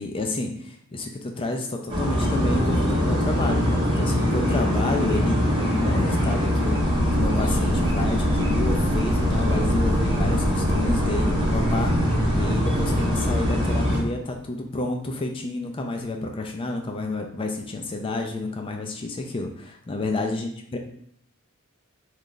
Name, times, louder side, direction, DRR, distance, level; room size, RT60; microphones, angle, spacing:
voice 1, 0.0-6.8 7.1-20.8, left 2 dB, 25° left, 3 dB, 0.4 m, -30 dB
sound 1, 1.9-14.0, equal, 25° right, 1.0 m, -23 dB
sound 2, 6.8-14.4, right 1 dB, 80° right, 0.3 m, -29 dB
3.2 x 2.4 x 3.8 m, 0.66 s
head